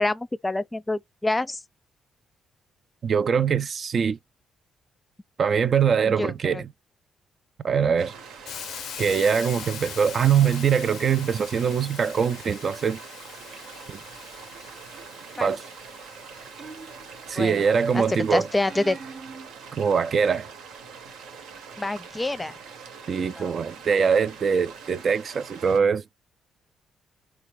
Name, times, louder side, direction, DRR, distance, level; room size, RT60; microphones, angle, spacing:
voice 1, 0.0-1.6 6.0-6.6 15.4-15.5 17.4-17.7 17.9-19.0 21.8-22.6 23.4-23.5, left 2 dB, 20° left, 0.6 m, -27 dB
voice 2, 3.0-4.2 5.4-6.6 7.6-8.1 9.0-13.0 13.9-14.0 15.4-15.6 17.3-18.5 19.7-20.5 23.1-26.0, right 6 dB, 55° right, 0.4 m, -23 dB
sound 1, 8.0-25.8, right 6 dB, 80° right, 1.0 m, -44 dB
Hiss, 8.5-18.3, left 9 dB, 70° left, 0.5 m, -42 dB
sound 2, 15.4-15.8 16.6-17.5 18.7-19.5, right 4 dB, 35° right, 0.8 m, -42 dB
4.0 x 2.3 x 3.1 m
supercardioid pair, 55°, 0 cm